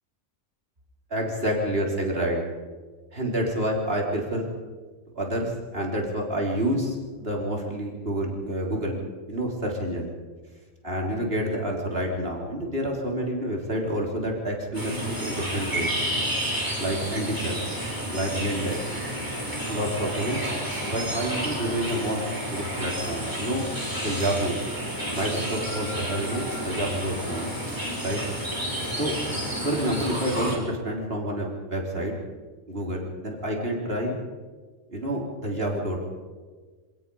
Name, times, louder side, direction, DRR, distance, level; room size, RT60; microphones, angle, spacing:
voice 1, 1.1-2.4 3.1-4.5 5.1-9.0 9.3-10.1 10.8-15.9 16.8-17.7 18.1-18.8 19.7-20.4 20.8-22.2 22.5-23.6 24.0-24.6 25.1-27.5 28.0-28.2 29.0-29.1 29.6-32.1 32.7-34.2 34.9-36.0, right 1 dB, 50° right, -1 dB, 3.9 m, -28 dB
sound 1, 14.7-30.6, equal, 15° right, 4.3 m, -30 dB
26.0 x 18.5 x 5.5 m, 1.4 s
omnidirectional pair, 1.3 m